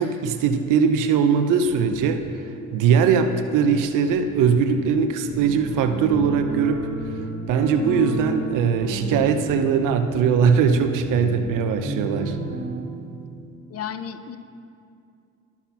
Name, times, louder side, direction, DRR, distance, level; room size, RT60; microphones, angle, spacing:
voice 1, 0.0-2.2 2.7-6.8 7.5-12.4, right 6 dB, 70° right, 7 dB, 0.8 m, -20 dB
sound 1, 1.6-2.2 2.8-5.9 6.2-7.0 7.6-10.7 11.0-11.2, left 1 dB, 40° right, 1.5 m, -47 dB
sound 2, 5.3-12.8, right 1 dB, 20° right, 2.7 m, -31 dB
voice 2, 13.7-14.4, left 8 dB, 45° left, 11 dB, 0.6 m, -33 dB
11.5 x 6.0 x 5.8 m, 2.5 s
supercardioid pair, 85°, 33 cm